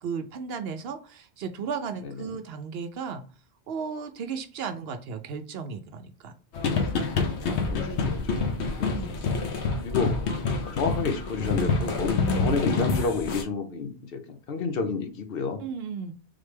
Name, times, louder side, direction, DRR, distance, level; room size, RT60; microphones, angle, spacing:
voice 1, 0.0-3.2 3.7-6.3 8.9-9.2 15.6-16.1, right 6 dB, 70° right, 8 dB, 0.8 m, -35 dB
voice 2, 2.0-2.4 7.4-8.0 8.2-8.4 8.8-9.0 9.8-10.1 10.7-15.6, left 4 dB, 65° left, 7 dB, 0.9 m, -30 dB
sound 1, 6.5-13.4, left 4 dB, 85° left, 1.0 m, -27 dB
4.0 x 3.2 x 3.3 m, 0.35 s
omnidirectional pair, 1.1 m